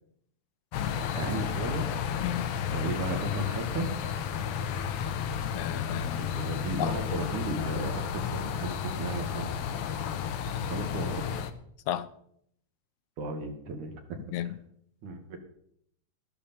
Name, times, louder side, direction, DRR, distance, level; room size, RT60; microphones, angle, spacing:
sound 1, 0.7-11.5, left 8 dB, 70° left, 1.4 m, -32 dB
voice 1, 0.9-1.9 2.7-3.9 6.2-9.6 10.7-11.4 13.2-13.9 15.0-15.4, right 3 dB, 80° right, 3.3 m, -35 dB
voice 2, 2.2-2.5 5.4-6.3 6.8-7.0 9.4-9.5 11.9-12.1 14.3-14.6, left 11 dB, 85° left, 2.1 m, -33 dB
12.5 x 11.5 x 4.3 m
omnidirectional pair, 3.4 m